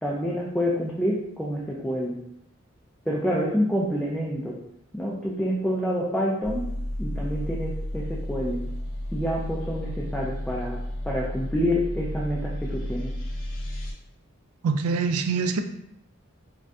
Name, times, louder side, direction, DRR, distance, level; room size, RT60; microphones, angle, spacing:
voice 1, 0.0-2.2 3.1-4.6 4.9-6.7 7.0-8.6 9.1-13.1, equal, 5° left, -5 dB, 0.3 m, -27 dB
sound 1, 6.4-13.9, left 1 dB, 65° left, 0.9 m, -32 dB
voice 2, 14.6-15.6, right 5 dB, 85° right, 8 dB, 0.3 m, -24 dB
3.5 x 2.1 x 2.6 m, 0.78 s
head